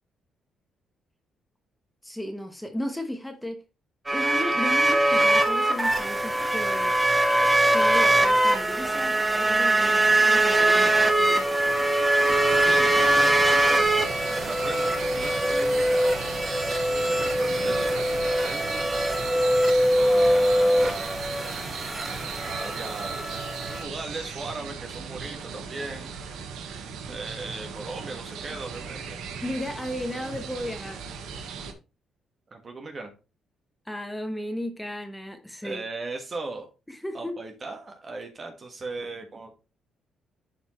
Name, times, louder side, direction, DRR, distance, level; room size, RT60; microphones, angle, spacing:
voice 1, 2.0-3.6 4.1-7.0 7.7-11.9 29.4-31.0 33.9-35.8 36.9-37.4, left 1 dB, 5° left, 6 dB, 1.2 m, -35 dB
sound 1, 4.1-23.8, right 1 dB, 15° right, 1.6 m, -22 dB
sound 2, 12.2-31.7, right 6 dB, 85° right, 1.3 m, -37 dB
voice 2, 12.7-14.1 14.4-16.4 16.9-18.9 19.9-21.2 22.4-23.2 23.6-26.1 27.1-29.2 32.5-33.1 35.6-36.6 37.1-39.5, right 3 dB, 35° right, 3 dB, 1.4 m, -37 dB
11.5 x 4.4 x 3.1 m, 0.30 s
cardioid pair, 90°, 0 cm